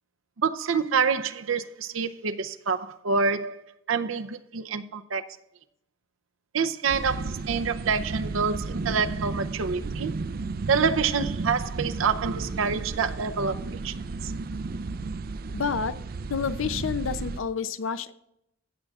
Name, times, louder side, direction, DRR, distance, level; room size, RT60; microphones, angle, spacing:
voice 1, 0.4-3.6 3.9-5.2 6.5-10.1 10.7-13.9 14.2-14.3, right 5 dB, 90° right, 0.6 m, -27 dB
sound 1, 6.9-17.4, right 3 dB, 50° right, 0.4 m, -33 dB
voice 2, 15.5-16.0 16.3-18.1, left 6 dB, 80° left, 0.6 m, -29 dB
15.5 x 7.6 x 2.4 m
head